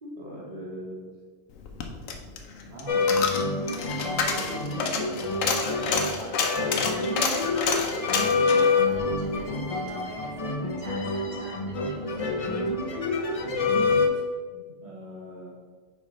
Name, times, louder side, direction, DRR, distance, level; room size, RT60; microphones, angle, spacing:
voice 1, 0.2-1.1 2.7-3.3 4.0-5.5 13.4-13.8 14.1-14.2 14.5-15.5, right 1 dB, 55° right, -2 dB, 1.2 m, -41 dB
Coin (dropping), 1.6-10.0 10.3-10.4, left 5 dB, 90° left, 1.1 m, -30 dB
sound 1, 2.9-14.1, left 3 dB, 50° left, 0.4 m, -27 dB
voice 2, 5.9-12.7, equal, 35° right, -2 dB, 1.1 m, -44 dB
5.3 x 4.6 x 4.1 m, 1.5 s
omnidirectional pair, 1.3 m